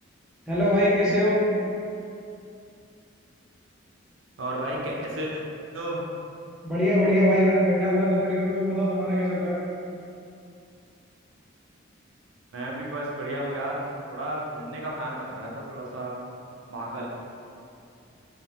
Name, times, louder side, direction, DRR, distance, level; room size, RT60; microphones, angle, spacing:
voice 1, 0.5-1.5 6.6-9.6, equal, 5° right, -10 dB, 0.5 m, -22 dB
voice 2, 4.4-5.4 5.7-6.0 12.5-16.2 16.7-17.1, right 1 dB, 70° right, -3 dB, 0.4 m, -32 dB
3.2 x 2.0 x 2.7 m, 2.6 s
head